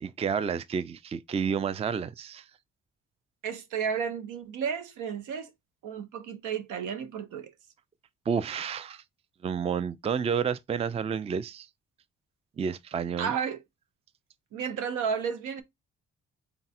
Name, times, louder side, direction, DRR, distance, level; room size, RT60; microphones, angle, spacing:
voice 1, 0.0-2.4 8.3-9.0 9.4-11.7 12.6-13.3, right 6 dB, 20° right, 0.4 m, -30 dB
voice 2, 3.4-5.5 5.8-7.5 13.2-13.6 14.5-15.6, right 7 dB, 85° right, 0.9 m, -32 dB
4.0 x 2.2 x 4.2 m
cardioid pair, 90°, 30 cm